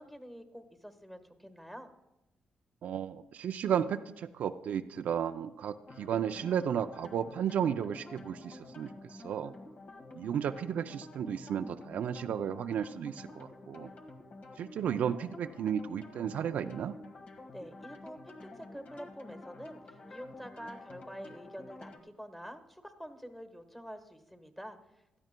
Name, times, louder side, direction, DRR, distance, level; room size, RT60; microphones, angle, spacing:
voice 1, 0.0-1.9 17.5-24.8, equal, 5° left, 7 dB, 1.4 m, -47 dB
voice 2, 2.8-9.5 10.1-13.9 14.6-16.9, right 8 dB, 70° right, 9 dB, 0.4 m, -33 dB
sound 1, 5.9-22.0, left 2 dB, 55° left, 1.6 m, -50 dB
16.5 x 12.5 x 2.2 m, 0.96 s
cardioid pair, 70°, 3 cm